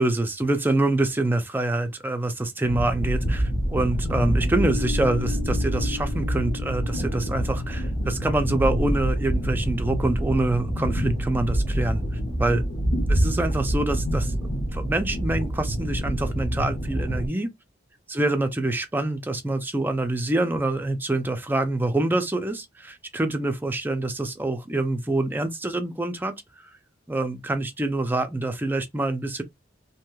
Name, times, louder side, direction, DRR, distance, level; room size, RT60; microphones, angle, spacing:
voice 1, 0.0-12.1 12.4-12.7 13.1-17.5 18.1-26.3 27.1-29.4, right 2 dB, 10° right, 0.4 m, -26 dB
sound 1, 2.6-17.3, equal, 60° left, 1.0 m, -26 dB
Piano, 4.5-9.9, left 14 dB, 85° left, 1.0 m, -39 dB
3.1 x 2.7 x 2.2 m
head